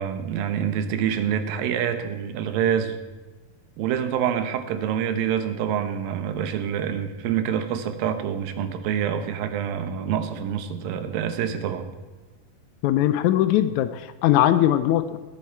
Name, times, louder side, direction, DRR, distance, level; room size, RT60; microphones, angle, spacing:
voice 1, 0.0-3.0 3.8-11.9, right 8 dB, 85° right, 9 dB, 2.8 m, -26 dB
voice 2, 12.8-15.2, left 12 dB, 90° left, 11 dB, 1.7 m, -20 dB
18.5 x 8.7 x 4.6 m, 1.3 s
omnidirectional pair, 4.0 m